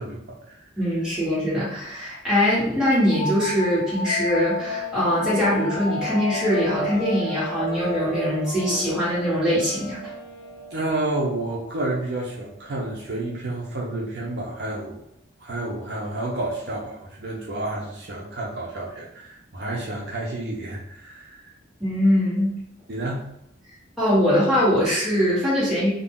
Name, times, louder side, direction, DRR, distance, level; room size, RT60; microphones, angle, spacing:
voice 1, 0.0-0.6 10.7-15.0 15.4-21.5 22.9-23.3, right 2 dB, 60° right, -3 dB, 0.6 m, -30 dB
voice 2, 0.8-10.0 21.8-22.5 24.0-25.9, equal, 5° right, -10 dB, 1.3 m, -22 dB
sound 1, 3.1-12.5, left 1 dB, 65° left, 0.9 m, -33 dB
Wind instrument woodwind instrument, 4.5-11.2, left 2 dB, 85° left, 0.5 m, -41 dB
2.4 x 2.1 x 3.6 m, 0.77 s
head